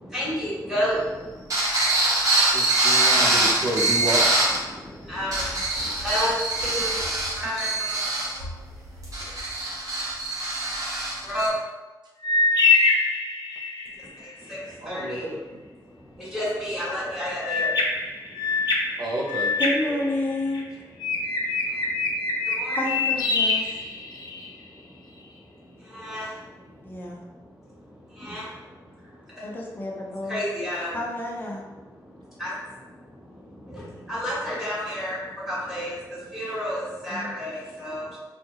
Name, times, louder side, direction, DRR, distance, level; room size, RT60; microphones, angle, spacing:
voice 1, 0.1-1.0 5.1-5.3 6.0-6.3 6.6-7.0 7.4-7.9 11.2-11.5 14.5-14.6 14.9-15.2 16.3-17.7 22.6-22.8 26.0-26.3 28.2-28.4 30.3-31.0 32.4-32.5 34.1-35.2 35.5-35.9 36.3-38.0, equal, ahead, -9 dB, 1.5 m, -29 dB
sound 1, 1.5-4.6 5.1-11.5, right 2 dB, 50° right, 1.0 m, -23 dB
voice 2, 2.5-4.2 14.8-15.4 19.0-19.5, right 1 dB, 80° right, -1 dB, 0.6 m, -29 dB
sound 2, 12.2-13.9 17.4-20.6 21.0-24.5, left 3 dB, 70° left, 0.6 m, -24 dB
voice 3, 19.6-20.7 22.8-23.7 26.8-27.2 29.4-30.4 30.9-31.6 37.1-37.4, left 1 dB, 25° left, -2 dB, 0.7 m, -30 dB
4.2 x 2.3 x 2.9 m, 1.2 s
wide cardioid pair, 145°, 7 cm